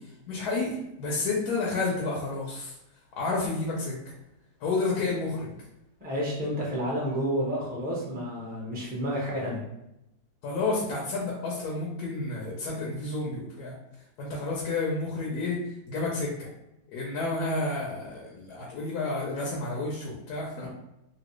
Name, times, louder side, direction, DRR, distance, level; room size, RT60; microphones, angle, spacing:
voice 1, 0.3-2.7 3.2-4.0 4.6-5.5 10.4-13.7 14.2-15.6 15.9-16.5 16.9-20.7, left 3 dB, 75° left, -3 dB, 1.2 m, -30 dB
voice 2, 6.0-9.6 20.6-20.7, equal, 10° right, -5 dB, 0.6 m, -30 dB
3.0 x 2.7 x 3.0 m, 0.89 s
omnidirectional pair, 1.7 m